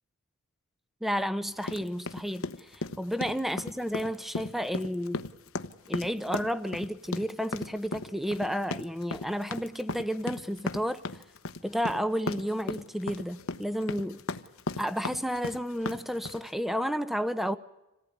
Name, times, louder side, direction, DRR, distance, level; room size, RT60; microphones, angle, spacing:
voice 1, 1.0-5.2 5.9-11.2 11.6-14.2 14.8-17.6, equal, ahead, 0.9 m, -31 dB
sound 1, 1.6-16.5, left 3 dB, 65° left, 1.0 m, -36 dB
27.0 x 18.0 x 9.7 m
head